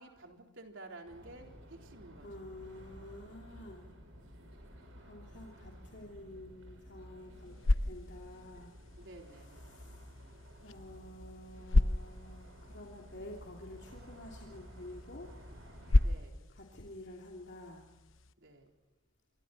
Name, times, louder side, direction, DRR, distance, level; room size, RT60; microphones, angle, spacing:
voice 1, 0.0-2.5 8.6-9.9 16.0-16.6 18.4-18.7, right 2 dB, 65° right, 2 dB, 3.9 m, -53 dB
sound 1, 1.1-16.1, equal, 85° right, 6.8 m, -53 dB
voice 2, 2.2-3.9 5.0-7.6 7.8-8.7 9.7-10.0 10.6-15.3 16.6-17.8, left 1 dB, 55° left, -1 dB, 3.0 m, -49 dB
sound 2, 7.3-18.3, left 2 dB, 75° left, 0.9 m, -35 dB
26.0 x 25.0 x 4.3 m, 1.1 s
head